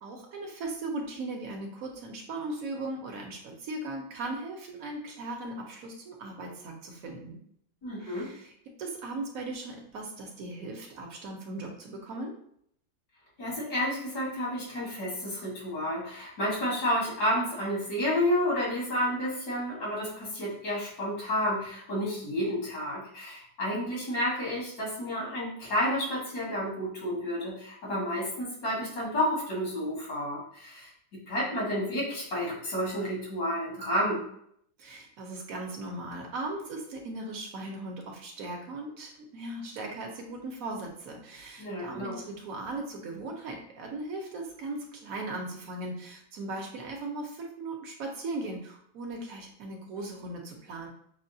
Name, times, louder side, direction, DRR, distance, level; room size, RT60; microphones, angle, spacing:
voice 1, 0.0-7.4 8.0-8.5 8.8-12.3 34.8-50.9, right 2 dB, 65° right, 1 dB, 1.1 m, -38 dB
voice 2, 7.8-8.3 13.4-34.3 41.6-42.2, equal, 80° left, -4 dB, 2.1 m, -30 dB
6.2 x 2.2 x 2.7 m, 0.68 s
omnidirectional pair, 1.7 m